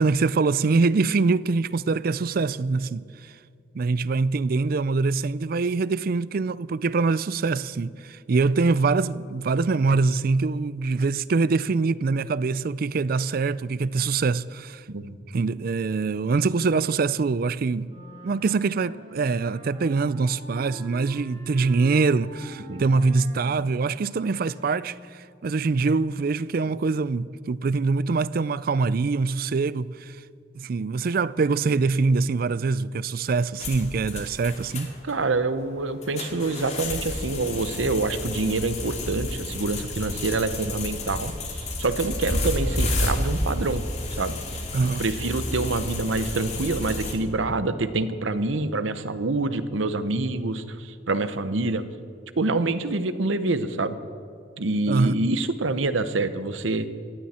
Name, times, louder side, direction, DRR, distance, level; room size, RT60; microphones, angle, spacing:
voice 1, 0.0-3.3 3.7-14.8 15.3-17.9 18.2-30.2 30.5-34.9 44.7-45.1 54.9-55.2, right 4 dB, 50° right, 0.4 m, -24 dB
sound 1, 17.9-25.2, right 1 dB, 30° right, 4.3 m, -45 dB
sound 2, 33.6-47.1, left 1 dB, 35° left, 2.3 m, -31 dB
voice 2, 35.0-43.8 44.2-51.8 52.4-54.0 54.6-56.9, right 3 dB, 80° right, 0.9 m, -26 dB
19.5 x 15.5 x 4.3 m
head